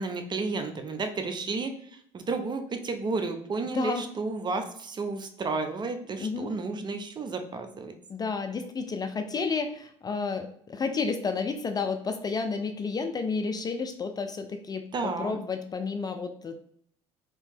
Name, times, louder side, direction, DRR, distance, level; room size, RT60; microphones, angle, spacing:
voice 1, 0.0-7.9 14.9-15.4, right 3 dB, 30° right, 7 dB, 0.5 m, -32 dB
voice 2, 6.2-6.5 8.1-16.6, left 4 dB, 30° left, 7 dB, 0.4 m, -31 dB
2.9 x 2.7 x 3.5 m, 0.64 s
hypercardioid pair, 70°, 14 cm